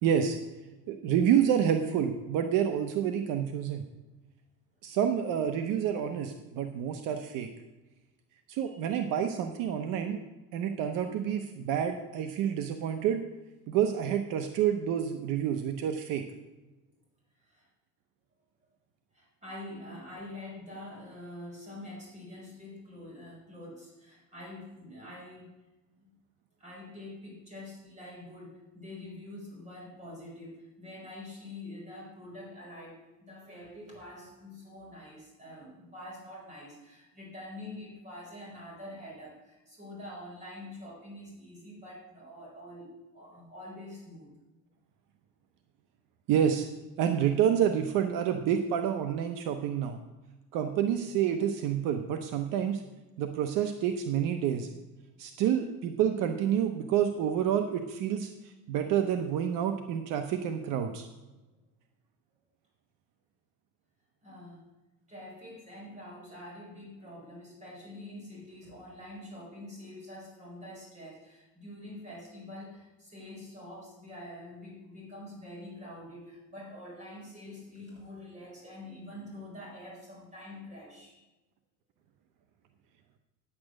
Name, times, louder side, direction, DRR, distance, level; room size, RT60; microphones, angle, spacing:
voice 1, 0.0-0.4 0.9-3.8 4.8-7.5 8.5-10.2 10.5-13.2 13.7-16.2 46.3-46.7 47.0-50.0 50.5-52.8 53.2-54.7 55.2-58.3 58.7-61.1, right 9 dB, 70° right, 7 dB, 0.9 m, -28 dB
voice 2, 19.1-25.5 26.0-26.1 26.6-44.3 64.2-64.6 65.1-81.2, left 1 dB, 20° right, -2 dB, 4.6 m, -46 dB
9.7 x 8.6 x 6.3 m, 1.1 s
cardioid pair, 160°, 34 cm